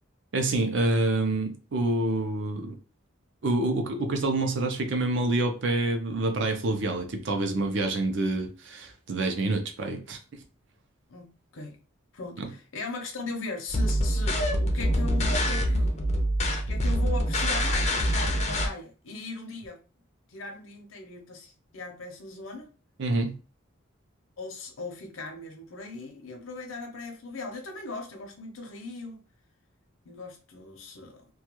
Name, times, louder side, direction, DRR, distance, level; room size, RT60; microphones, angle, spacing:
voice 1, 0.3-2.7 3.4-10.2 12.4-12.5 23.0-23.4, right 2 dB, 60° right, 5 dB, 0.5 m, -27 dB
voice 2, 12.1-16.0 16.7-19.8 20.3-22.7 24.4-29.2 30.0-31.3, left 2 dB, 75° left, 2 dB, 0.6 m, -38 dB
sound 1, 13.7-18.7, equal, 30° left, 0.4 m, -25 dB
2.3 x 2.2 x 2.9 m, 0.34 s
head